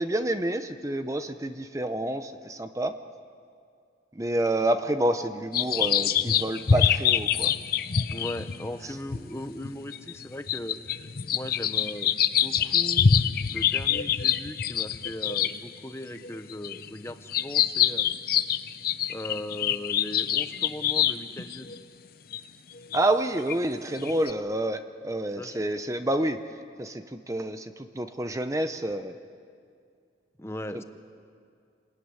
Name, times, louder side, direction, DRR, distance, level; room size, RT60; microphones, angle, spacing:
voice 1, 0.0-2.9 4.1-7.5 8.8-8.9 22.9-29.2 30.7-30.8, right 1 dB, 15° right, 8 dB, 0.8 m, -28 dB
sound 1, 5.5-15.6 16.2-21.8 22.3-22.4 22.9-23.0 23.5-23.6 23.9-24.3, left 8 dB, 50° left, 0.7 m, -25 dB
voice 2, 8.1-12.1 12.4-13.1 13.5-18.1 19.1-21.7 25.4-25.6 30.4-30.8, left 1 dB, 15° left, 8 dB, 1.0 m, -38 dB
28.5 x 20.5 x 9.8 m, 2.3 s
head